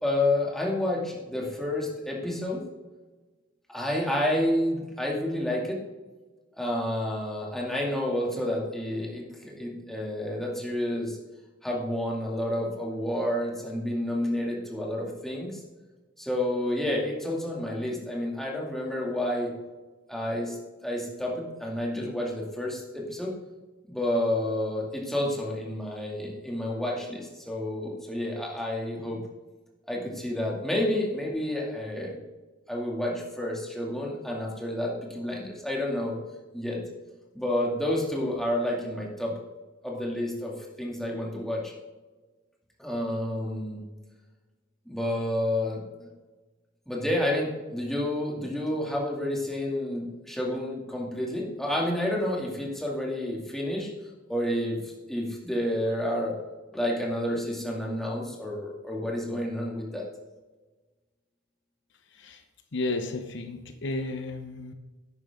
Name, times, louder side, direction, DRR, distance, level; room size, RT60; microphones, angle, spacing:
voice 1, 0.0-2.6 3.7-5.8 6.6-11.2 11.6-15.6 16.2-19.5 20.1-23.3 23.8-29.2 29.9-32.1 32.7-36.2 36.5-36.8 37.3-39.3 39.8-40.5 40.8-41.7 42.8-43.8 44.9-46.1 46.9-53.9 54.3-56.3 56.7-60.1, left 1 dB, ahead, -3 dB, 2.4 m, -30 dB
voice 2, 62.1-62.4 62.7-64.7, left 2 dB, 65° left, 6 dB, 0.9 m, -33 dB
11.5 x 8.9 x 3.7 m, 1.2 s
head